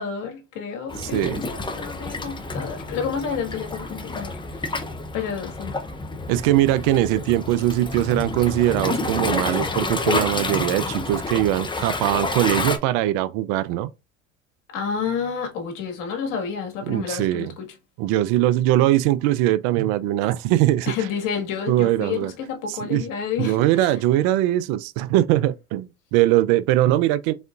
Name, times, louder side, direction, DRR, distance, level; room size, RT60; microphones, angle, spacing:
voice 1, 0.0-4.9 5.1-5.7 14.7-17.7 20.9-24.0, left 6 dB, 60° left, 1.8 m, -30 dB
Waves surf, 0.9-12.8, left 3 dB, 15° left, 0.7 m, -29 dB
voice 2, 1.0-1.4 6.3-13.9 16.9-17.5 18.0-20.9 21.7-22.3 22.7-23.0 23.4-27.3, right 14 dB, 60° right, 0.5 m, -21 dB
4.1 x 3.8 x 2.4 m
hypercardioid pair, 80°, 37 cm